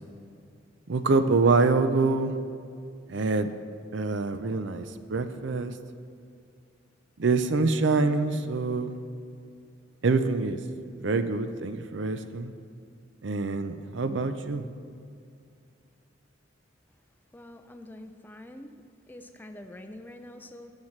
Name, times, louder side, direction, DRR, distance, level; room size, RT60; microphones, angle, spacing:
voice 1, 0.9-2.3 3.1-3.5 3.9-5.8 7.2-9.0 10.0-10.6 11.0-12.5 13.2-14.7, right 3 dB, 65° right, 10 dB, 0.5 m, -25 dB
voice 2, 17.3-18.7 19.1-20.7, left 1 dB, 10° left, 7 dB, 0.4 m, -45 dB
19.0 x 7.4 x 3.2 m, 2.4 s
head